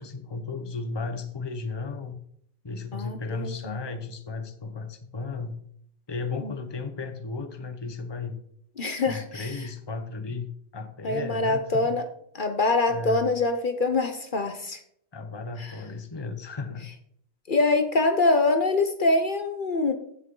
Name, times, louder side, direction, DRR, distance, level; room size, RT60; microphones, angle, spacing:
voice 1, 0.0-2.2 2.6-5.6 6.1-8.4 9.1-12.0 12.9-13.4 15.1-16.9, left 4 dB, 25° left, 8 dB, 1.0 m, -35 dB
voice 2, 2.9-3.8 6.4-6.5 8.8-9.6 11.0-12.0 12.3-14.8 15.6-15.7 17.5-19.9, left 3 dB, 50° left, 7 dB, 1.1 m, -24 dB
15.5 x 6.3 x 3.9 m, 0.67 s
omnidirectional pair, 1.1 m